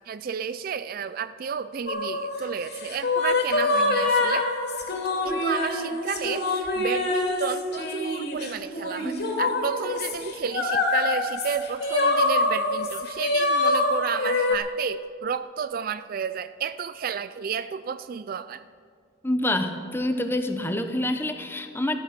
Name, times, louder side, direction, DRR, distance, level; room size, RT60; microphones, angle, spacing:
voice 1, 0.1-4.5 5.2-18.6, right 7 dB, 50° right, 14 dB, 0.3 m, -32 dB
sound 1, 1.9-14.5, left 2 dB, 55° left, 2.5 m, -25 dB
voice 2, 19.2-22.0, left 1 dB, 10° left, 7 dB, 0.9 m, -27 dB
14.5 x 13.5 x 5.9 m, 2.1 s
head